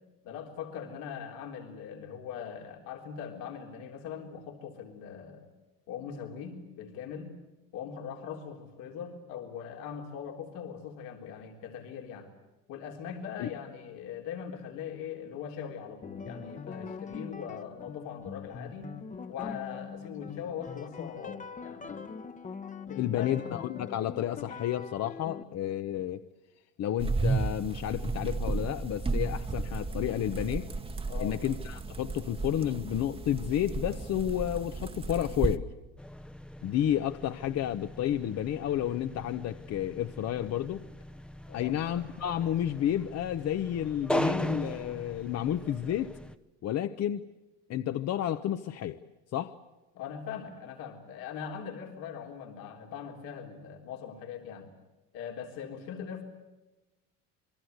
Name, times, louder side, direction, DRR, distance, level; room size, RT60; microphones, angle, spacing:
voice 1, 0.2-5.5 5.9-7.3 7.7-12.3 12.7-18.9 19.3-22.0 22.9-23.4 31.1-31.4 41.5-41.7 49.9-54.7 55.1-56.2, left 7 dB, 80° left, 2 dB, 3.8 m, -41 dB
sound 1, 16.0-25.4, left 5 dB, 25° left, 1.1 m, -42 dB
voice 2, 23.0-26.2 26.8-30.7 31.2-35.6 36.6-40.8 41.5-46.1 46.6-47.2 47.7-49.0 49.3-49.5, left 11 dB, 50° left, 10 dB, 1.0 m, -31 dB
sound 2, 27.0-35.6, right 3 dB, 15° right, 1.1 m, -33 dB
sound 3, 36.0-46.4, equal, 5° left, 0.8 m, -38 dB
27.5 x 21.5 x 8.1 m, 1.0 s
cardioid pair, 120°, 33 cm